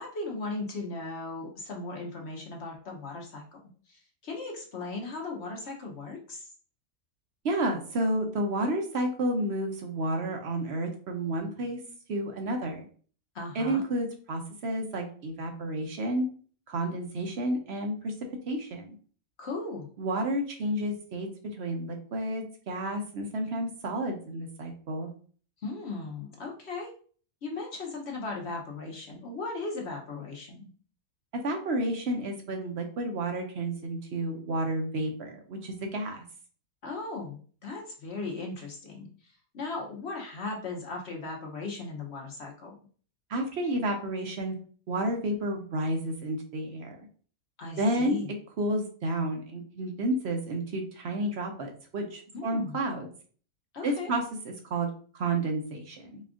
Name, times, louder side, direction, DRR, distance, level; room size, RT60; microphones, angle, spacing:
voice 1, 0.0-3.6 3.9-6.5 13.3-13.8 19.4-19.9 25.6-26.9 27.4-30.7 36.8-42.7 47.6-48.3 52.3-52.8 53.7-54.1, left 3 dB, 55° left, 0 dB, 1.0 m, -37 dB
voice 2, 7.4-11.8 12.1-12.9 13.5-16.3 16.7-18.1 18.5-18.9 20.0-21.3 21.6-25.1 31.4-36.2 43.3-44.5 44.9-47.0 47.8-48.2 48.6-53.1 53.8-54.9 55.1-56.2, right 1 dB, 55° right, 3 dB, 0.8 m, -31 dB
4.2 x 2.4 x 3.6 m, 0.44 s
omnidirectional pair, 1.5 m